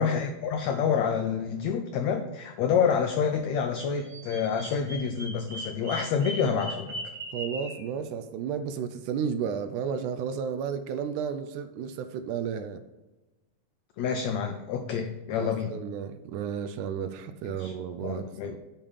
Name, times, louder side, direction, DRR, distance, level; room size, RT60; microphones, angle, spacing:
voice 1, 0.0-6.9 14.0-15.8 17.4-17.8 18.0-18.6, left 6 dB, 85° left, 1.5 m, -28 dB
Bird vocalization bird call bird song, 4.0-7.8, right 1 dB, 45° right, 2.7 m, -39 dB
voice 2, 7.3-12.8 15.4-18.6, right 7 dB, 80° right, 1.9 m, -33 dB
6.8 x 5.6 x 5.4 m
omnidirectional pair, 3.8 m